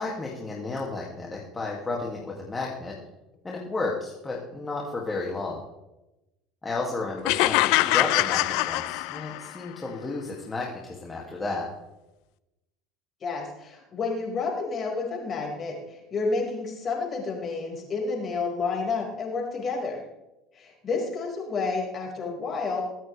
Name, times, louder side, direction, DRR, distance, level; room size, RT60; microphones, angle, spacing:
voice 1, 0.0-3.0 3.4-5.6 6.6-11.7, left 3 dB, 20° left, -2 dB, 2.5 m, -32 dB
sound 1, 7.2-9.6, left 18 dB, 75° left, 0.6 m, -23 dB
voice 2, 13.2-20.0 20.5-22.8, left 4 dB, 35° left, -1 dB, 5.5 m, -30 dB
23.0 x 8.7 x 3.5 m, 0.96 s
supercardioid pair, 100°, 0 cm